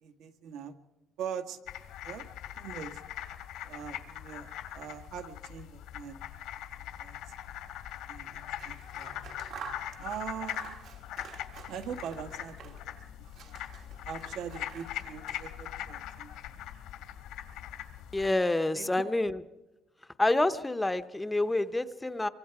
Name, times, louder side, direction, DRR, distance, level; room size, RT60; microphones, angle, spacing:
voice 1, 0.0-0.7 1.2-1.6 2.0-2.3 2.6-3.0 3.6-6.2 6.8-7.2 8.1-9.2 10.0-10.8 11.7-12.9 13.4-13.5 14.0-16.3 18.8-18.9, right 8 dB, 80° right, 6 dB, 1.9 m, -42 dB
sound 1, 1.7-18.3, left 11 dB, 90° left, 2.1 m, -42 dB
Scissors, 8.4-13.0 13.2-15.8, right 8 dB, 60° right, 1.4 m, -49 dB
voice 2, 18.1-19.4 20.2-22.3, left 2 dB, 10° left, 12 dB, 0.7 m, -28 dB
25.0 x 23.5 x 4.8 m, 1.1 s
cardioid pair, 145°, 0 cm